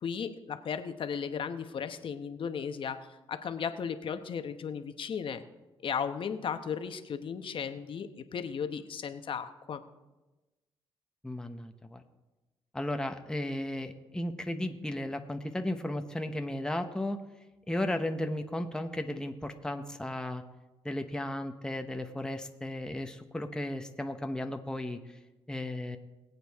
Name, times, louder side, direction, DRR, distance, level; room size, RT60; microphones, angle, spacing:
voice 1, 0.0-3.0 3.3-5.4 5.8-9.8, left 7 dB, 60° left, 9 dB, 1.0 m, -35 dB
voice 2, 11.2-12.0 12.7-17.2 17.7-20.4 20.8-25.2 25.5-26.0, left 1 dB, 5° left, 6 dB, 0.9 m, -35 dB
21.0 x 8.3 x 3.6 m, 1.1 s
cardioid pair, 85°, 10 cm